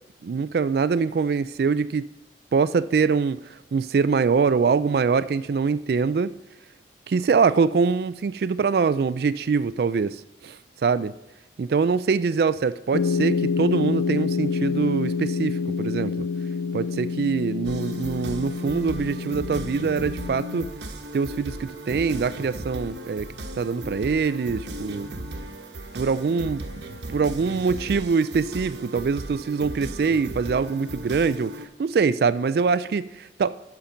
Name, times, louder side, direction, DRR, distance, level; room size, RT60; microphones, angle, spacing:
voice 1, 0.2-2.1 2.5-6.3 7.1-11.1 11.6-16.3 16.7-20.7 21.1-23.3 23.5-25.1 25.9-26.6 27.1-33.7, right 5 dB, 55° right, 16 dB, 0.3 m, -24 dB
sound 1, 12.9-20.7, left 5 dB, 65° left, 0.3 m, -27 dB
sound 2, 17.6-31.7, right 1 dB, 75° right, 1.1 m, -36 dB
13.0 x 5.8 x 5.1 m, 0.94 s
head